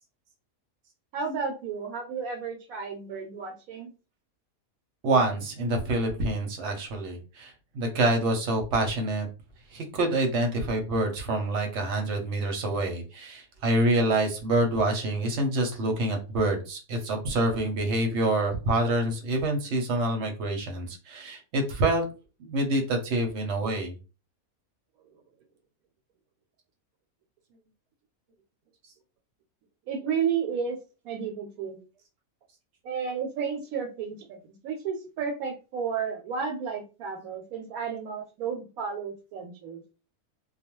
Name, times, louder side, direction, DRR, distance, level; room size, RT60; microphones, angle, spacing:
voice 1, 1.1-3.9 29.9-30.8 31.0-31.8 32.8-39.8, right 6 dB, 85° right, 2 dB, 1.0 m, -32 dB
voice 2, 5.0-9.3 9.7-22.0 22.4-23.9, right 1 dB, 60° right, 3 dB, 0.8 m, -26 dB
2.3 x 2.2 x 2.9 m, 0.32 s
omnidirectional pair, 1.5 m